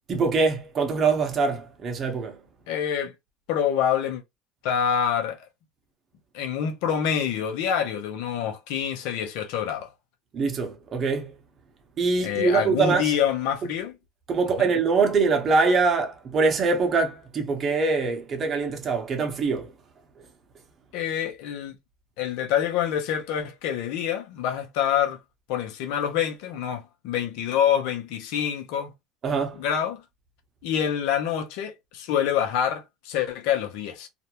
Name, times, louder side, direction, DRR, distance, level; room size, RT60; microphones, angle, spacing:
voice 1, 0.1-2.4 10.3-11.3 12.0-13.0 14.3-19.7 29.2-29.6, right 4 dB, 40° right, 0.8 m, -23 dB
voice 2, 2.7-3.1 3.5-4.2 4.6-5.5 6.3-9.9 12.2-14.0 14.6-14.7 20.9-21.7 22.2-25.2 25.5-28.9 29.5-30.0 30.6-34.1, left 9 dB, 75° left, 0.6 m, -26 dB
2.5 x 2.1 x 2.9 m
supercardioid pair, 90°, 0 cm